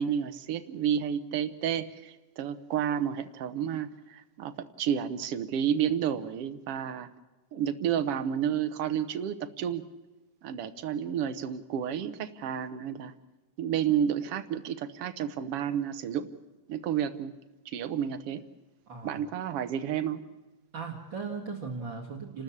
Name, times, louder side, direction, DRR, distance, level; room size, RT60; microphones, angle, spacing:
voice 1, 0.0-7.1 7.5-9.8 10.4-13.1 13.6-16.3 16.7-17.3 17.6-18.4 19.0-20.2, right 9 dB, 75° right, 10 dB, 1.3 m, -31 dB
voice 2, 18.9-19.2 20.7-22.4, right 5 dB, 40° right, -1 dB, 2.3 m, -37 dB
30.0 x 13.0 x 8.6 m, 1.1 s
omnidirectional pair, 3.9 m